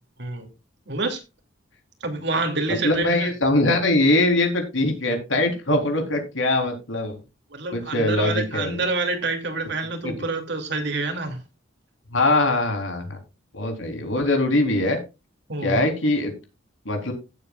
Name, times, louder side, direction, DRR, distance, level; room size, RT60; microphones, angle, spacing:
voice 1, 0.9-1.2 2.0-3.3 7.5-11.4 15.5-15.8, right 3 dB, 60° right, 2.7 m, -27 dB
voice 2, 2.7-7.2 7.7-8.8 10.0-10.1 12.1-13.2 13.5-15.0 15.6-16.3 16.9-17.1, left 2 dB, 70° left, 3.9 m, -22 dB
16.0 x 8.2 x 2.4 m
head